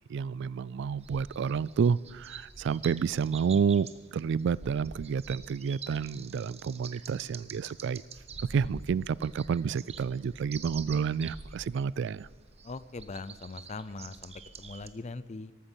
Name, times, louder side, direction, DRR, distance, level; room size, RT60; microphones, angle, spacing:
voice 1, 0.1-3.9 4.1-8.0 8.5-12.3, right 6 dB, 60° right, 23 dB, 0.3 m, -29 dB
sound 1, 1.0-14.9, right 5 dB, 30° right, 0.8 m, -46 dB
voice 2, 12.6-15.5, left 3 dB, 35° left, 16 dB, 0.5 m, -41 dB
13.5 x 13.5 x 5.7 m, 1.5 s
head